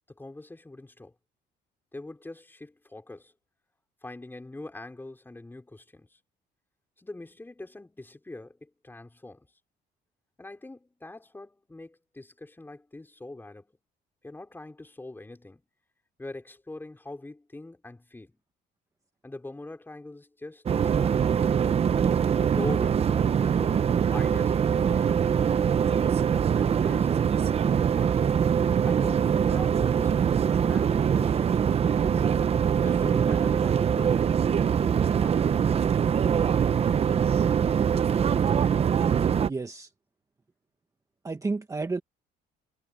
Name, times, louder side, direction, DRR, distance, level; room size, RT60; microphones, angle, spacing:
voice 1, 0.1-1.1 1.9-3.3 4.0-6.2 7.0-9.5 10.4-13.8 14.2-15.6 16.2-18.4 19.2-21.6 22.4-25.3 25.7-27.2 27.8-28.5 28.8-32.4 32.8-34.2 34.6-36.0, left 2 dB, 10° left, 4.7 m, -43 dB
sound 1, 20.7-39.5, right 8 dB, 35° right, 0.8 m, -23 dB
voice 2, 39.4-39.9 41.2-42.0, right 3 dB, 20° right, 1.4 m, -31 dB
cardioid pair, 110°, 17 cm